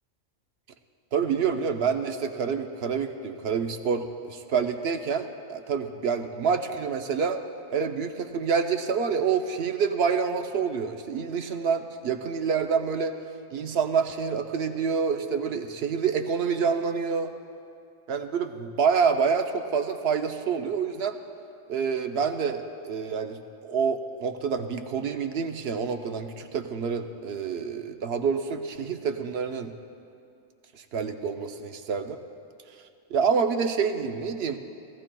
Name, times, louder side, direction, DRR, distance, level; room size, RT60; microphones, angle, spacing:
voice 1, 1.1-7.4 7.7-13.2 13.5-17.3 18.1-21.2 21.7-29.7 30.9-32.2 33.1-34.6, right 6 dB, 60° right, 7 dB, 0.8 m, -27 dB
17.5 x 14.0 x 2.3 m, 2.4 s
omnidirectional pair, 1.3 m